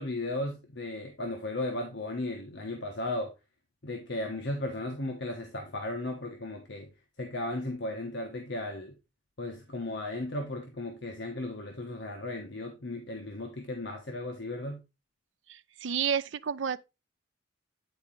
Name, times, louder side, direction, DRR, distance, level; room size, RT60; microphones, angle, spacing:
voice 1, 0.0-3.3 3.8-6.9 7.2-8.9 9.4-14.8, left 2 dB, 65° left, 1.2 m, -35 dB
voice 2, 15.5-16.8, right 7 dB, 75° right, 0.5 m, -31 dB
9.3 x 4.3 x 3.8 m
head